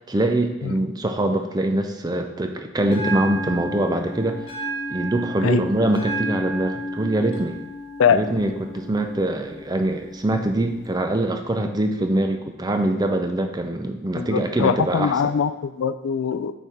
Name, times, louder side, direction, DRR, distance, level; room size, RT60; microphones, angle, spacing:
voice 1, 0.1-4.4 4.9-7.6 8.1-15.1, right 1 dB, 20° right, 5 dB, 0.4 m, -23 dB
Bell, 2.8-10.8, right 1 dB, 30° left, 1.2 m, -33 dB
voice 2, 14.2-16.5, left 7 dB, 75° left, 12 dB, 0.3 m, -22 dB
5.6 x 4.3 x 4.6 m, 1.1 s
head